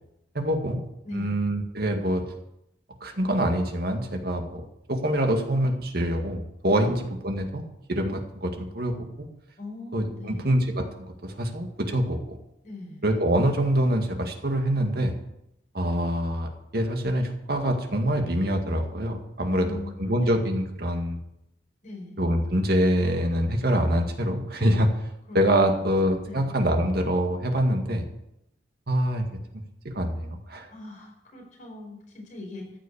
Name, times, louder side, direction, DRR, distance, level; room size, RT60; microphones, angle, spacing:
voice 1, 0.3-0.8 1.1-2.2 3.0-7.6 7.9-9.3 9.9-12.4 13.0-15.1 15.7-19.7 20.0-21.2 22.2-24.9 25.3-28.0 28.9-29.3 29.8-30.7, equal, 60° right, 4 dB, 1.9 m, -25 dB
voice 2, 1.0-1.4 6.8-7.0 9.6-10.5 12.6-13.1 19.4-20.4 21.8-22.2 25.3-25.9 26.2-26.5 30.7-32.7, left 2 dB, 45° left, -1 dB, 5.0 m, -41 dB
14.5 x 6.3 x 8.5 m, 0.83 s
head